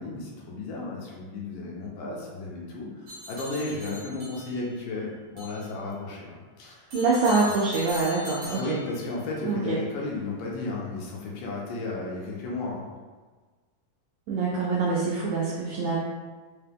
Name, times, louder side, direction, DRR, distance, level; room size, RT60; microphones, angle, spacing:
voice 1, 0.0-6.9 8.6-12.9, left 3 dB, 80° left, -3 dB, 2.3 m, -34 dB
sound 1, 3.1-4.8 5.4-5.6 6.9-9.2, left 1 dB, 65° right, 1.1 m, -41 dB
voice 2, 6.9-8.8 9.4-9.8 14.3-16.0, right 3 dB, 85° right, -5 dB, 1.7 m, -25 dB
5.6 x 2.2 x 3.4 m, 1.4 s
omnidirectional pair, 4.0 m